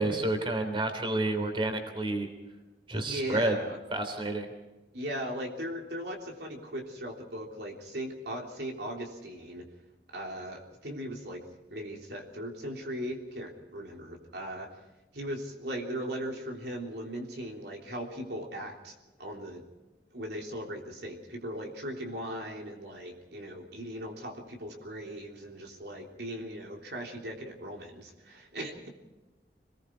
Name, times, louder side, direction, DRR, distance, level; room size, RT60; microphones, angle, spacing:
voice 1, 0.0-2.3 2.9-3.5 3.9-4.5, right 2 dB, 30° right, 6 dB, 3.3 m, -29 dB
voice 2, 2.9-3.8 4.9-9.6 10.1-11.4 11.7-14.7 15.1-18.9 19.2-19.6 20.1-28.9, equal, 70° right, 1 dB, 3.4 m, -38 dB
27.0 x 20.5 x 4.7 m, 1.1 s
head